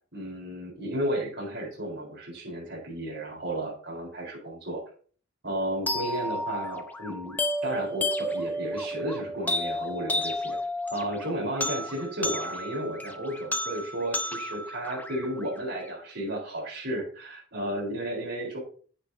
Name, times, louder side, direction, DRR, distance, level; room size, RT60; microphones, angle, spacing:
voice 1, 0.1-4.8 5.4-10.6 10.9-18.6, right 1 dB, 60° right, -1 dB, 3.9 m, -33 dB
sound 1, 5.9-15.9, left 1 dB, 10° left, 0.7 m, -32 dB
9.6 x 8.5 x 2.7 m, 0.42 s
head